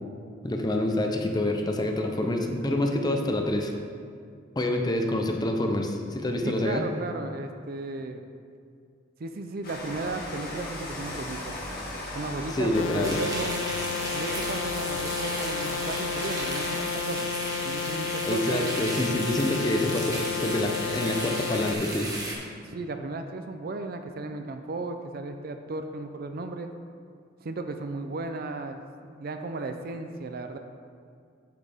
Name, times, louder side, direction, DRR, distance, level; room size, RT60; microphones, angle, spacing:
voice 1, 0.4-3.7 4.6-6.9 12.5-13.2 18.3-22.1, left 1 dB, 20° left, 3 dB, 0.6 m, -27 dB
voice 2, 6.4-8.2 9.2-11.5 12.1-13.6 14.1-17.3 17.6-18.8 22.6-26.7 27.4-30.6, right 3 dB, 50° right, 7 dB, 0.5 m, -35 dB
Rain, 9.6-16.8, left 1 dB, 50° left, 1.6 m, -38 dB
sound 1, 12.7-21.7, left 7 dB, 90° left, 0.4 m, -32 dB
sound 2, 13.0-22.3, right 1 dB, 20° right, 1.1 m, -34 dB
8.6 x 6.4 x 3.5 m, 2.2 s
head